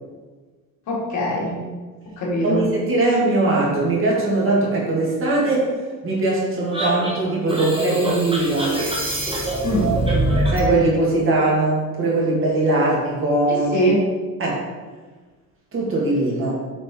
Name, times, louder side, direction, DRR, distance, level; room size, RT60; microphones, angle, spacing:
voice 1, 0.9-1.6 2.2-2.7 9.6-10.0 13.5-14.0, equal, 60° left, -3 dB, 2.0 m, -22 dB
voice 2, 2.4-5.7 6.0-8.7 10.5-13.9 14.4-14.6 15.7-16.6, right 2 dB, 40° right, -4 dB, 2.0 m, -20 dB
sound 1, 6.7-10.7, right 1 dB, 15° right, 1.4 m, -23 dB
7.8 x 4.0 x 3.7 m, 1.4 s
cardioid pair, 125°, 32 cm